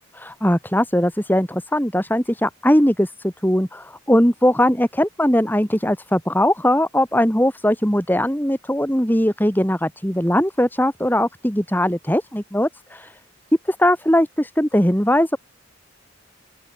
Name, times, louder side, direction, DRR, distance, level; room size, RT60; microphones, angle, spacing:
voice 1, 0.2-13.2 13.7-15.4, equal, 10° left, 7.5 m, -20 dB
open air
head